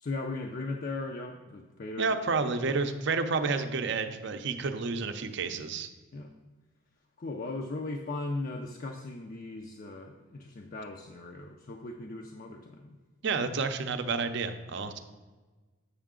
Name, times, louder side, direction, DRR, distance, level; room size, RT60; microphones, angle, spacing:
voice 1, 0.0-2.2 6.1-6.3 7.2-13.0, left 2 dB, 40° left, 3 dB, 0.4 m, -38 dB
voice 2, 2.0-5.9 13.2-15.0, right 4 dB, 55° right, 8 dB, 0.6 m, -30 dB
8.0 x 5.6 x 3.7 m, 1.3 s
head